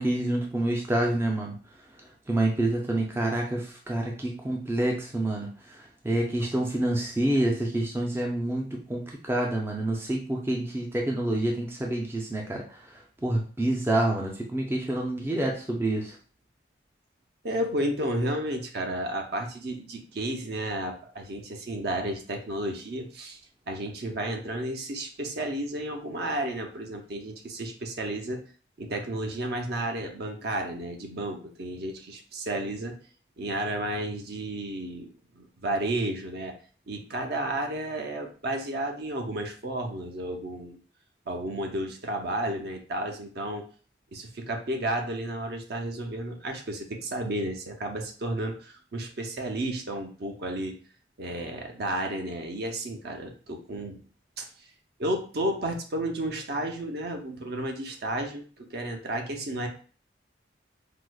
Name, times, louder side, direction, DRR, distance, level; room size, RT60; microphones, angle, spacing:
voice 1, 0.0-1.5 2.3-5.5 5.7-12.8 13.2-16.1, right 1 dB, 15° right, 0 dB, 0.4 m, -27 dB
voice 2, 17.4-23.4 23.7-28.4 28.8-33.0 33.4-35.1 35.4-36.5 36.9-40.8 41.3-43.7 44.1-50.8 51.2-54.0 54.4-54.5 55.0-59.7, right 1 dB, 55° right, 4 dB, 0.6 m, -32 dB
4.7 x 2.0 x 2.2 m, 0.40 s
head